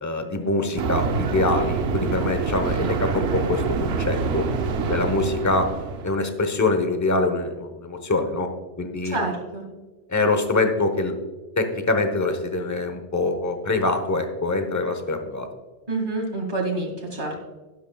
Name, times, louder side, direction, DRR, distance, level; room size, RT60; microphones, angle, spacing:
voice 1, 0.0-4.5 4.9-5.7 6.0-8.5 8.8-9.2 10.1-11.1 11.6-15.5, left 2 dB, 15° left, 6 dB, 0.9 m, -24 dB
sound 1, 0.8-6.1, right 5 dB, 65° right, 0.9 m, -26 dB
voice 2, 9.0-9.6 15.9-17.4, right 2 dB, 45° right, 0 dB, 2.4 m, -27 dB
12.0 x 11.5 x 2.3 m, 1.3 s
omnidirectional pair, 1.2 m